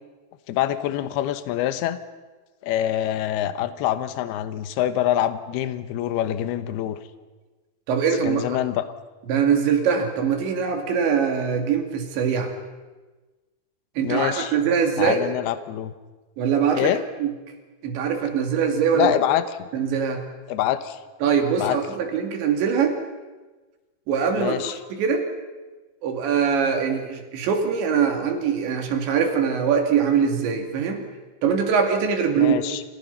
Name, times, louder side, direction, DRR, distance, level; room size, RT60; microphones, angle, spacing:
voice 1, 0.5-2.0 2.6-7.0 8.2-8.8 14.0-14.6 15.0-15.9 16.7-17.0 18.9-19.7 20.5-21.0 21.6-21.8 24.4-24.8 32.4-32.8, left 12 dB, 70° left, 11 dB, 2.7 m, -25 dB
voice 2, 7.9-8.6 9.3-12.5 14.0-15.2 16.4-16.9 17.2-17.3 17.8-19.1 19.7-20.2 21.2-23.0 24.1-24.5 24.9-25.2 26.0-31.0 31.4-32.6, right 6 dB, 70° right, 4 dB, 4.8 m, -22 dB
29.0 x 27.5 x 5.6 m, 1.3 s
omnidirectional pair, 5.5 m